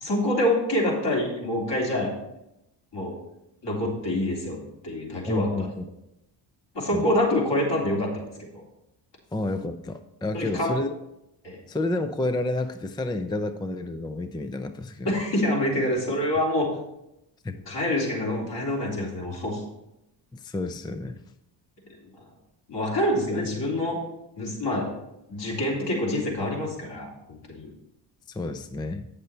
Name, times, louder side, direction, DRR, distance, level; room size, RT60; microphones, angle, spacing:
voice 1, 0.0-2.1 2.9-3.2 3.6-5.7 6.7-8.3 10.3-10.7 11.4-11.6 15.1-16.7 17.7-19.6 22.7-24.0 24.4-24.9 25.3-27.7, left 1 dB, 55° left, -4 dB, 3.5 m, -26 dB
voice 2, 5.2-5.8 6.9-7.1 9.3-10.9 11.7-15.1 17.4-17.6 20.3-21.2 28.3-29.1, left 2 dB, 10° left, 9 dB, 0.4 m, -30 dB
8.3 x 6.7 x 4.4 m, 0.87 s
supercardioid pair, 60°, 50 cm